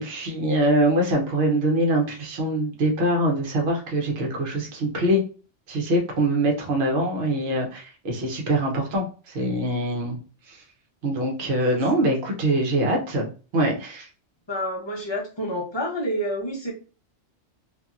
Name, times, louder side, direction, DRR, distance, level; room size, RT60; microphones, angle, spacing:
voice 1, 0.0-5.2 5.7-10.2 10.5-10.6 11.0-13.3 13.5-14.1, right 1 dB, 60° right, 0 dB, 1.0 m, -23 dB
voice 2, 14.5-16.7, equal, 25° left, -2 dB, 0.7 m, -28 dB
2.8 x 2.6 x 2.4 m, 0.36 s
omnidirectional pair, 1.2 m